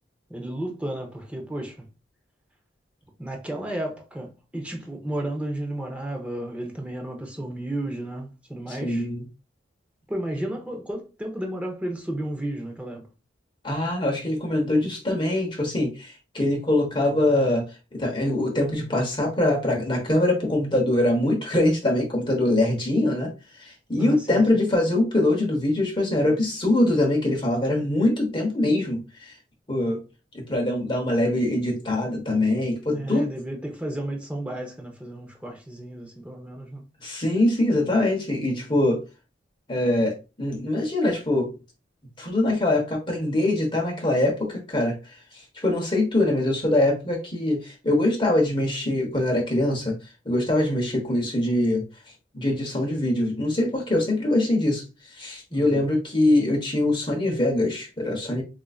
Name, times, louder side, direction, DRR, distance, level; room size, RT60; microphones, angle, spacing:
voice 1, 0.3-1.8 3.2-9.1 10.1-13.1 24.0-24.4 32.9-36.8 55.5-55.9, right 1 dB, 5° right, 0.7 m, -33 dB
voice 2, 8.8-9.2 13.6-17.6 17.9-23.3 23.6-29.3 29.7-30.0 30.3-33.3 37.0-39.0 39.7-41.5 42.2-44.9 45.5-50.0 50.2-51.8 52.3-54.8 55.2-58.4, left 1 dB, 25° left, 1.0 m, -23 dB
4.7 x 2.5 x 2.3 m
head